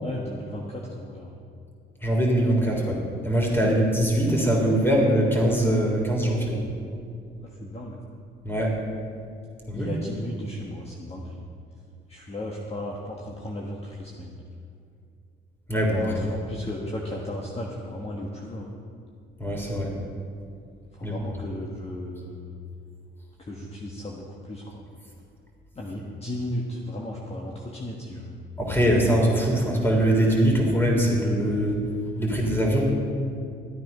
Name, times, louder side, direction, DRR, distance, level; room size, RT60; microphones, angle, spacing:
voice 1, 0.0-1.4 3.6-3.8 6.7-6.9 7.4-8.0 9.7-11.4 12.1-14.4 16.0-18.7 20.9-22.5 23.4-24.9 25.7-28.4, left 1 dB, 30° left, -2 dB, 1.4 m, -35 dB
voice 2, 2.0-3.0 3.2-6.5 8.4-8.7 9.7-9.9 15.7-16.3 19.4-19.9 21.0-21.2 28.6-31.8 32.2-32.9, right 1 dB, 10° left, -1 dB, 3.4 m, -22 dB
13.0 x 9.0 x 5.6 m, 2.4 s
cardioid pair, 90°, 20 cm